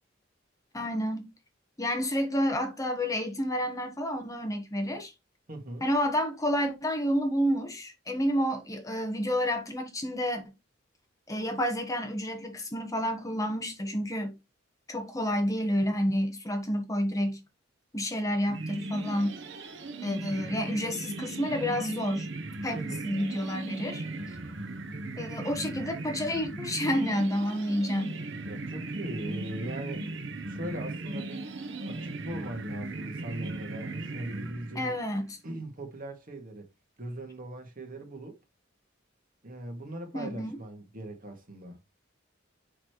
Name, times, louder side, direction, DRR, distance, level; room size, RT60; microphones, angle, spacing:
voice 1, 0.7-1.3 1.8-5.1 5.8-10.4 11.3-14.4 14.9-17.4 17.9-19.4 20.0-22.3 22.6-24.0 25.2-28.2 34.7-35.3 40.1-40.5, equal, 20° left, 1.4 m, -29 dB
voice 2, 5.5-5.9 22.7-23.1 28.4-30.0 30.5-31.5 31.9-35.0 35.4-36.7 37.0-38.4 39.4-41.8, right 1 dB, 45° right, 2.2 m, -40 dB
sound 1, 18.5-35.1, right 2 dB, 65° right, 1.1 m, -37 dB
6.4 x 5.9 x 3.2 m
head